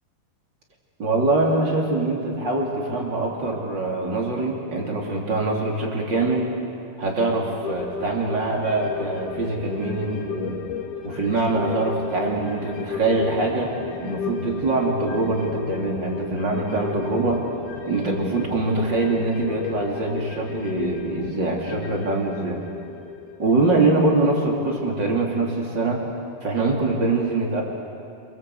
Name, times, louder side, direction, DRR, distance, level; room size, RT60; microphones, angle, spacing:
voice 1, 1.0-6.5 7.0-10.5 11.0-13.7 14.0-17.4 17.8-22.6 23.4-26.0 26.4-27.6, right 2 dB, 30° right, -1 dB, 3.2 m, -23 dB
sound 1, 7.6-24.4 24.7-24.8, left 6 dB, 60° left, 2.4 m, -34 dB
28.0 x 22.5 x 8.0 m, 2.5 s
omnidirectional pair, 5.0 m